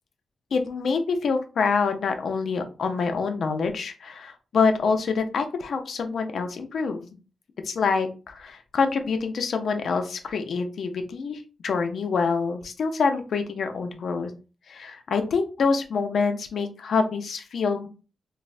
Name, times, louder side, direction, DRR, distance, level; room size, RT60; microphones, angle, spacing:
voice 1, 0.5-7.1 7.6-14.3 14.7-17.9, left 5 dB, 75° left, 6 dB, 0.4 m, -26 dB
3.1 x 2.0 x 2.4 m, 0.34 s
cardioid pair, 100°, 0 cm